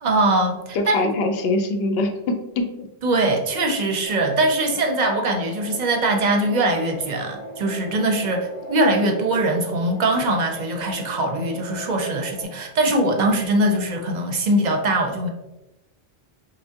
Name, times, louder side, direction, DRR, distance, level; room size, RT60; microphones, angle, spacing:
voice 1, 0.0-1.1 3.0-15.3, right 2 dB, 50° right, 3 dB, 0.6 m, -22 dB
voice 2, 0.7-2.9, left 2 dB, 75° left, 5 dB, 0.8 m, -23 dB
sound 1, 4.1-12.4, equal, 40° left, 1.5 m, -37 dB
5.5 x 2.0 x 2.8 m, 0.98 s
omnidirectional pair, 1.0 m